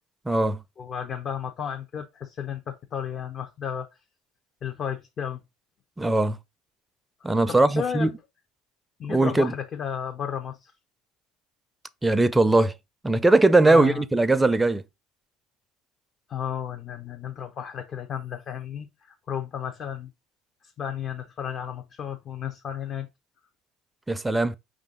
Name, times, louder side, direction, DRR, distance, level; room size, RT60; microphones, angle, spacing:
voice 1, 0.3-0.6 6.0-6.4 7.2-8.1 9.1-9.5 12.0-12.7 13.0-14.8 24.1-24.6, right 2 dB, 10° right, 0.4 m, -20 dB
voice 2, 0.8-3.9 4.6-5.4 7.5-8.1 9.0-10.7 13.6-14.0 16.3-20.1 20.8-23.1, left 8 dB, 45° left, 0.6 m, -33 dB
5.1 x 2.5 x 3.7 m
hypercardioid pair, 75°, 0 cm